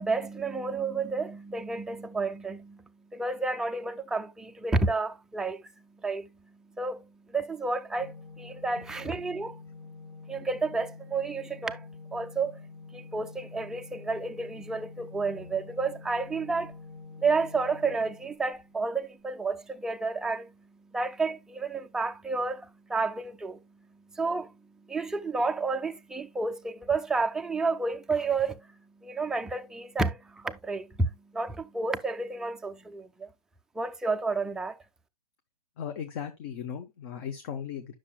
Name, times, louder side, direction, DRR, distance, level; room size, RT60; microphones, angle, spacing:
voice 1, 0.0-2.8 3.1-5.6 6.0-6.3 6.8-9.6 10.3-12.6 12.9-16.8 17.2-20.5 20.9-23.6 24.1-24.5 24.9-28.7 29.0-33.3 33.8-34.8, right 3 dB, 5° right, 0.3 m, -31 dB
Organ, 7.9-18.8, left 4 dB, 75° left, 2.7 m, -47 dB
voice 2, 35.8-38.0, left 8 dB, 40° left, 0.8 m, -37 dB
9.7 x 6.2 x 2.2 m
figure-of-eight pair, 120°, 19 cm